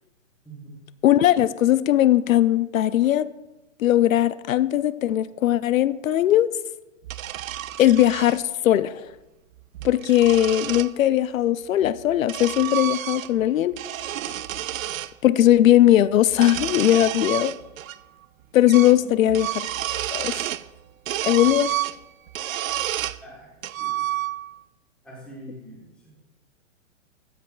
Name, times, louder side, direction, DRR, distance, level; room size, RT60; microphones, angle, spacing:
voice 1, 1.0-3.3 3.8-6.5 7.8-8.9 9.8-13.7 15.2-17.5 18.5-19.5 20.1-20.3 21.3-21.7, left 13 dB, 85° left, 16 dB, 0.5 m, -19 dB
sound 1, 7.0-8.4 9.6-10.9 11.8-13.5 13.7-15.1 16.3-18.0 18.2-18.3 18.7-19.0 19.3-20.7 21.1-23.2 23.6-24.6, right 13 dB, 85° right, 0.5 m, -30 dB
voice 2, 23.2-24.0 25.0-26.1, right 1 dB, 5° left, -5 dB, 1.3 m, -43 dB
13.5 x 7.7 x 2.3 m, 1.0 s
hypercardioid pair, 175°, 39 cm